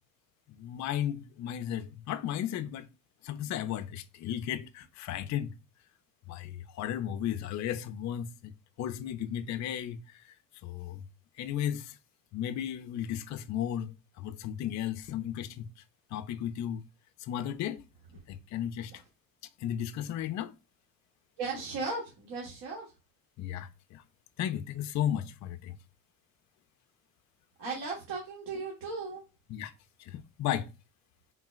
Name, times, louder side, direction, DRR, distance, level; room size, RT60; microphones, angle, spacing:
voice 1, 0.5-2.9 3.2-5.6 6.3-8.5 8.8-10.3 10.6-11.0 11.4-12.0 12.3-15.7 16.1-16.8 17.2-17.8 18.3-19.0 19.6-20.5 23.4-24.0 24.4-25.8 29.5-29.7 30.0-30.7, left 10 dB, 40° left, 0.4 m, -34 dB
voice 2, 21.4-22.9 27.6-29.2, right 4 dB, 60° right, 1.3 m, -36 dB
3.8 x 3.7 x 2.3 m
hypercardioid pair, 55°, 47 cm